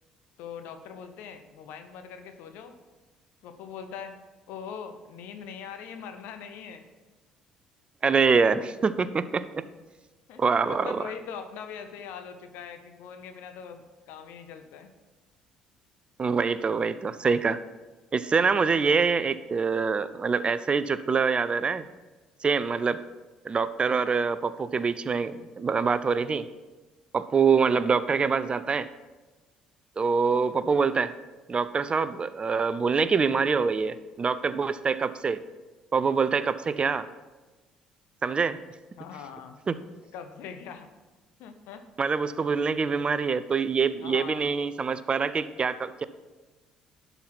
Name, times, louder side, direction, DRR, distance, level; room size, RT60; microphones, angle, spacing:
voice 1, 0.4-2.8 3.4-4.2 4.5-6.8 10.3-14.9 39.0-39.6 40.1-40.9 41.4-41.8 44.0-44.5, left 7 dB, 65° left, 8 dB, 0.7 m, -41 dB
voice 2, 8.0-9.6 10.4-11.0 16.2-17.6 18.1-21.8 22.4-23.0 23.4-26.5 27.1-28.9 30.0-31.1 31.5-35.4 35.9-37.1 38.2-38.6 39.7-39.8 42.0-46.0, right 5 dB, 30° right, 14 dB, 0.5 m, -25 dB
11.5 x 4.0 x 5.8 m, 1.2 s
hypercardioid pair, 55°, 3 cm